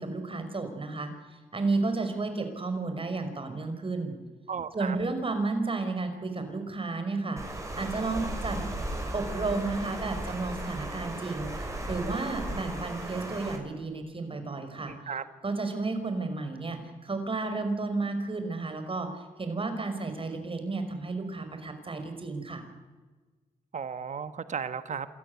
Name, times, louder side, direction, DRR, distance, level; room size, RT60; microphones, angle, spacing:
voice 1, 0.0-4.1 4.7-7.4 7.7-8.7 9.1-14.9 15.4-22.6, right 3 dB, 40° right, 7 dB, 5.5 m, -32 dB
voice 2, 4.5-5.0 14.8-15.2 23.7-25.1, right 6 dB, 55° right, 11 dB, 1.4 m, -35 dB
Water, 7.4-13.6, right 1 dB, 20° right, 6.2 m, -36 dB
28.0 x 14.0 x 9.7 m, 1.3 s
cardioid pair, 70°, 15 cm